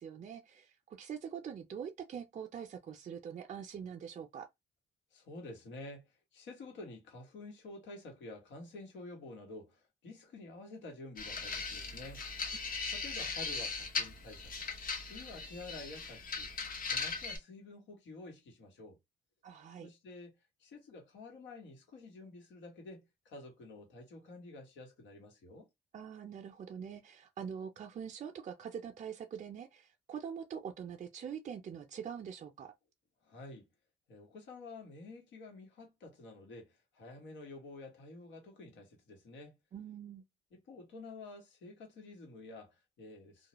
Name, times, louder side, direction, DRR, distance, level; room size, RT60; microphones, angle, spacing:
voice 1, 0.0-4.5 19.4-19.9 25.9-32.7 39.7-40.2, right 7 dB, 45° right, 0.4 m, -44 dB
voice 2, 5.1-12.2 12.9-14.7 15.1-16.5 16.9-19.0 19.8-25.7 33.2-33.7 34.1-39.6 40.5-43.5, left 2 dB, 85° left, 1.2 m, -50 dB
sound 1, 11.2-17.4, left 4 dB, 50° left, 0.8 m, -39 dB
2.3 x 2.0 x 2.9 m
cardioid pair, 95°, 18 cm